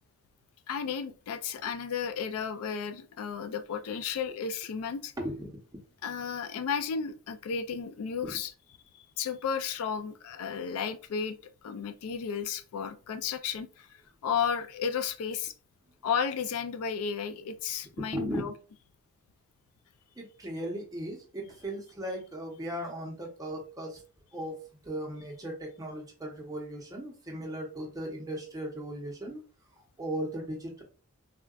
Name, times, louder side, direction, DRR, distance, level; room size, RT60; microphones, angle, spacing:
voice 1, 0.7-5.1 6.0-8.5 8.9-11.4 11.6-15.5 16.0-18.5, left 6 dB, 80° left, 0.3 m, -33 dB
voice 2, 5.2-5.8 8.2-8.4 18.0-18.5 20.2-24.0 24.3-24.5 24.8-29.4 30.0-30.8, right 1 dB, 15° right, 0.6 m, -37 dB
3.6 x 2.2 x 2.3 m
head